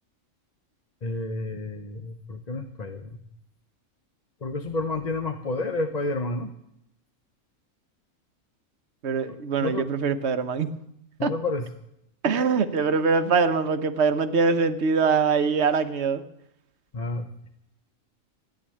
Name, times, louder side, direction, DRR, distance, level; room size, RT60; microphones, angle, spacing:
voice 1, 1.0-3.2 4.4-6.5 9.6-9.9 11.2-11.7 16.9-17.3, left 2 dB, 35° left, 7 dB, 0.9 m, -30 dB
voice 2, 9.0-10.7 11.2-11.3 12.2-16.2, right 5 dB, 55° right, 9 dB, 1.3 m, -23 dB
14.5 x 10.0 x 8.6 m, 0.78 s
omnidirectional pair, 1.5 m